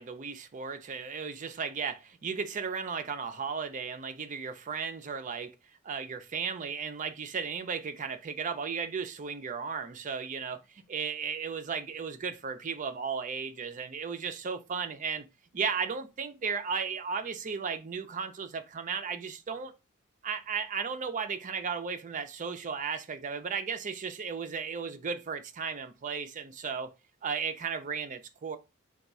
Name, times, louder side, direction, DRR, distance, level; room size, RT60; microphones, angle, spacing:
voice 1, 0.0-5.5 5.8-15.3 15.5-19.7 20.2-26.9 27.2-28.6, right 6 dB, 35° right, 0.4 m, -35 dB
3.5 x 2.3 x 4.1 m
head